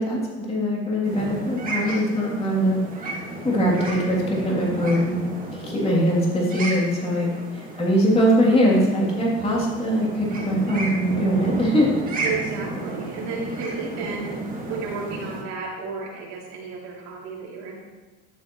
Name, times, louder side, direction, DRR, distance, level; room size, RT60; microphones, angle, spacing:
voice 1, 0.0-2.8 3.4-5.2 5.5-7.3 7.5-11.9, equal, 20° left, -4 dB, 3.0 m, -22 dB
sound 1, 1.0-15.4, right 2 dB, 30° right, 2.1 m, -33 dB
voice 2, 12.2-14.3 14.7-17.8, right 4 dB, 60° right, -4 dB, 3.3 m, -33 dB
12.0 x 7.2 x 3.1 m, 1.3 s
supercardioid pair, 120°, 30 cm